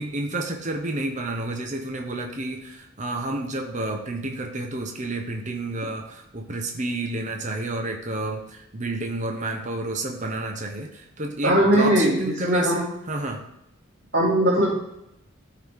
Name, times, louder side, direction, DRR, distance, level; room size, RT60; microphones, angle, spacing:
voice 1, 0.0-13.4, right 2 dB, 35° right, 3 dB, 0.9 m, -30 dB
voice 2, 11.4-12.8 14.1-14.7, right 1 dB, 55° right, -10 dB, 2.6 m, -19 dB
13.0 x 4.8 x 3.6 m, 0.83 s
head